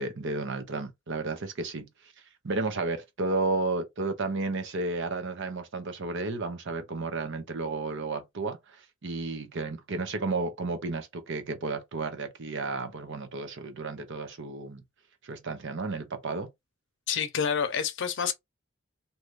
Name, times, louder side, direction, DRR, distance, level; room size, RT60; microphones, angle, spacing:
voice 1, 0.0-1.9 2.4-14.8 15.2-16.5, right 3 dB, 60° right, 0.8 m, -32 dB
voice 2, 17.1-18.3, left 7 dB, 60° left, 0.7 m, -28 dB
2.8 x 2.4 x 3.2 m
head